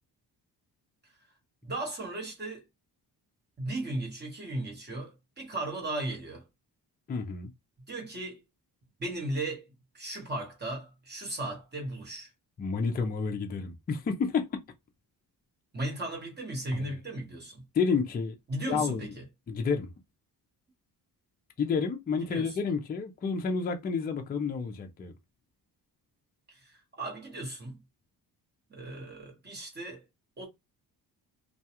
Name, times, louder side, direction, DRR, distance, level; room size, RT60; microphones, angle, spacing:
voice 1, 1.6-2.6 3.6-6.4 7.9-8.4 9.0-9.7 9.9-12.3 15.7-17.6 18.5-19.2 22.2-22.6 26.5-27.8 28.7-30.0 30.4-30.5, right 2 dB, 25° right, 1.1 m, -36 dB
voice 2, 7.1-7.5 12.6-14.6 16.7-16.9 17.7-18.4 18.7-19.1 19.5-19.9 21.6-25.2, left 5 dB, 25° left, 0.4 m, -30 dB
2.3 x 2.2 x 2.8 m
cardioid pair, 140°, 40 cm